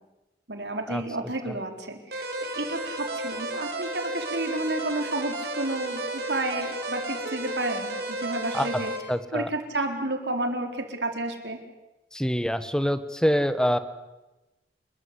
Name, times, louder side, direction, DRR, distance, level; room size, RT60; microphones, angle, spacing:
voice 1, 0.5-8.9 9.3-11.6, right 2 dB, 75° right, 5 dB, 4.2 m, -31 dB
sound 1, 2.1-9.0, right 2 dB, 60° right, 5.5 m, -33 dB
voice 2, 9.1-9.5 12.1-13.8, equal, 5° left, 12 dB, 1.4 m, -25 dB
29.0 x 21.5 x 8.4 m, 1.0 s
head